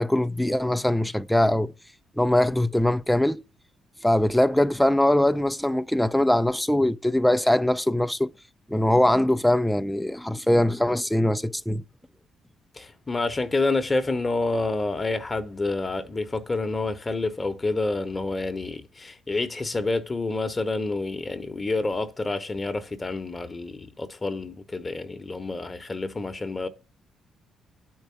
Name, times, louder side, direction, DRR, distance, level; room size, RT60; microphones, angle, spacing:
voice 1, 0.0-1.7 2.2-3.4 4.0-8.3 8.7-11.8, left 1 dB, 5° left, 0.5 m, -22 dB
voice 2, 12.8-26.7, left 3 dB, 25° left, 1.0 m, -28 dB
8.8 x 4.6 x 7.0 m
cardioid pair, 90°, 0 cm